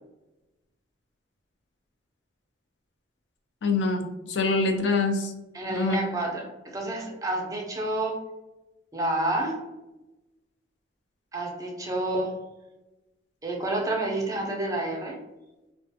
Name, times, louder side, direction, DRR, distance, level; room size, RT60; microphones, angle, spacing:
voice 1, 3.6-5.3 5.7-6.0, left 3 dB, 70° left, 5 dB, 0.4 m, -25 dB
voice 2, 5.5-8.3 8.9-9.6 11.3-12.4 13.4-15.2, right 1 dB, 20° right, -1 dB, 0.4 m, -29 dB
2.3 x 2.2 x 2.7 m, 1.0 s
head